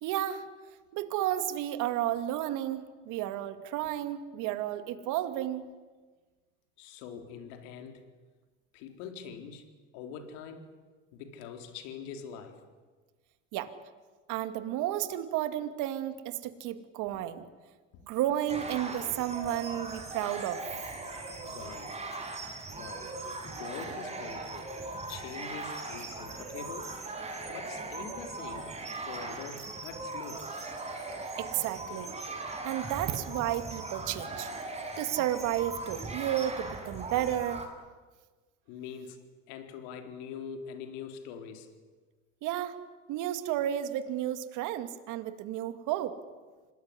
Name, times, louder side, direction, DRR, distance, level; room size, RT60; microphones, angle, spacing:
voice 1, 0.0-0.5 0.9-5.7 13.5-13.7 14.3-17.4 18.1-20.6 31.4-32.1 32.6-34.5 35.0-37.6 42.4-42.8 43.1-46.2, right 12 dB, 65° right, 10 dB, 2.4 m, -32 dB
voice 2, 6.8-8.0 8.7-9.6 9.9-10.8 11.1-12.6 21.4-21.9 22.7-23.1 23.4-24.7 25.1-27.0 27.5-30.5 38.7-41.7, left 6 dB, 70° left, 6 dB, 4.0 m, -44 dB
sound 1, 18.5-37.7, right 2 dB, 20° right, 7.3 m, -39 dB
26.5 x 20.0 x 10.0 m, 1.4 s
hypercardioid pair, 85°, 34 cm